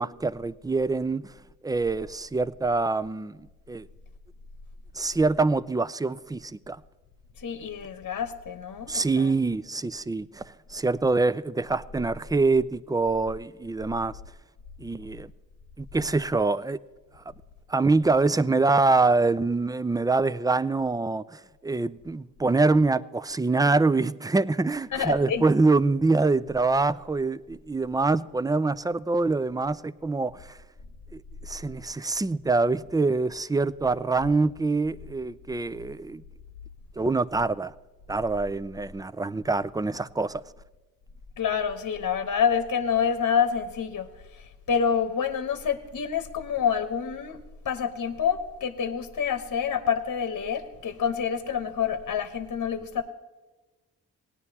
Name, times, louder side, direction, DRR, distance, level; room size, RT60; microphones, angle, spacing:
voice 1, 0.0-1.3 1.6-3.4 3.7-3.9 4.9-6.8 8.9-14.1 14.8-15.3 15.8-16.8 17.7-30.6 31.1-36.2 37.0-37.7 38.1-40.4, right 3 dB, 10° right, 0.4 m, -25 dB
voice 2, 7.4-9.3 24.9-25.4 41.4-44.1 44.3-47.4 47.6-53.0, left 7 dB, 50° left, 1.1 m, -27 dB
18.0 x 9.6 x 2.8 m
supercardioid pair, 45°, 38 cm